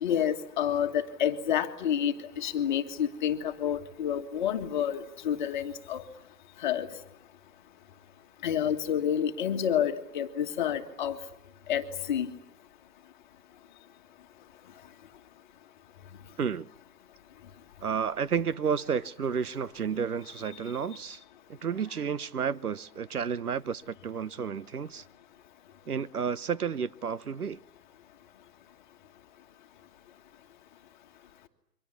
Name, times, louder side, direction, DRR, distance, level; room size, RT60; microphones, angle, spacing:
voice 1, 0.0-6.0 6.6-6.9 8.4-11.2 11.7-12.3, left 9 dB, 30° left, 1.7 m, -29 dB
voice 2, 16.4-16.7 17.8-21.2 21.5-25.0 25.9-27.6, right 7 dB, 65° right, 1.0 m, -31 dB
28.5 x 24.0 x 8.3 m
figure-of-eight pair, 140°, 49 cm